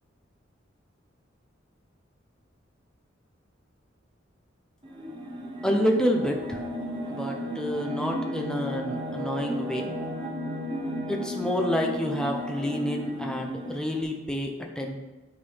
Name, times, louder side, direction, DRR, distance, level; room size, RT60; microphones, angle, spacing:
sound 1, 4.8-14.0, equal, 25° right, 1.4 m, -34 dB
voice 1, 5.6-6.6 7.1-9.9 11.1-15.0, equal, 5° left, 1 dB, 0.8 m, -28 dB
9.6 x 4.0 x 5.5 m, 1.1 s
head